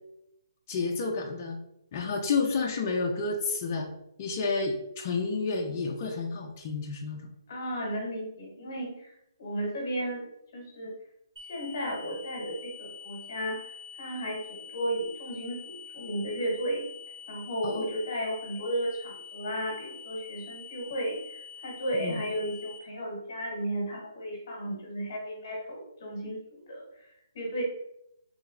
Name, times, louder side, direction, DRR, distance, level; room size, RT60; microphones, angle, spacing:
voice 1, 0.7-1.6 1.9-3.9 4.2-7.3 17.6-17.9 21.9-22.2, left 4 dB, 20° left, 0 dB, 0.3 m, -30 dB
voice 2, 7.5-10.2 10.5-10.9 11.5-16.8 17.3-26.4 26.7-26.8 27.3-27.6, equal, 35° left, -1 dB, 1.0 m, -34 dB
sound 1, 11.4-22.8, left 6 dB, 60° right, 1.1 m, -46 dB
3.1 x 3.0 x 3.6 m, 0.82 s
hypercardioid pair, 175°, 2 cm